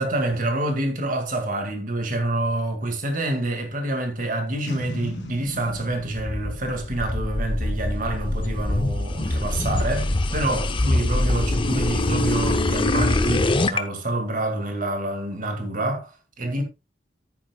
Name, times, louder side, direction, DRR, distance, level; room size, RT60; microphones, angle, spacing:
voice 1, 0.0-16.6, right 1 dB, 50° right, 2.1 m, -27 dB
Boom, 4.7-8.0, left 1 dB, 80° left, 1.8 m, -38 dB
sound 1, 5.8-13.8, left 2 dB, 30° left, 0.7 m, -24 dB
10.5 x 9.7 x 2.3 m
head